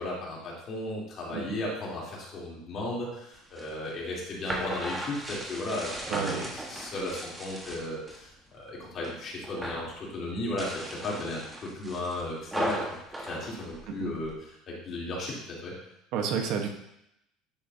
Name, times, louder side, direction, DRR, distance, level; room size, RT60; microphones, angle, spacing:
voice 1, 0.0-12.8 13.2-15.7, left 2 dB, 40° left, -4 dB, 3.2 m, -35 dB
sound 1, 3.3-8.2 8.6-9.2 9.4-9.9 10.4-14.3, right 1 dB, 10° right, 1.4 m, -37 dB
voice 2, 6.1-6.5 13.9-14.1 16.1-16.7, right 6 dB, 60° right, 4 dB, 1.2 m, -30 dB
10.5 x 6.9 x 2.8 m, 0.79 s
cardioid pair, 135°, 0 cm